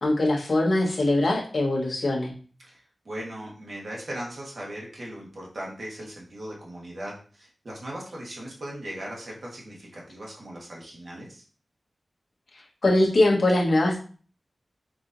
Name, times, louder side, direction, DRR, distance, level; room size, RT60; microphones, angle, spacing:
voice 1, 0.0-2.3 12.8-14.0, left 1 dB, 60° left, -2 dB, 1.3 m, -22 dB
voice 2, 2.6-11.4, right 1 dB, 60° right, -3 dB, 1.4 m, -38 dB
6.0 x 2.9 x 2.6 m, 0.40 s
wide cardioid pair, 105°, 0 cm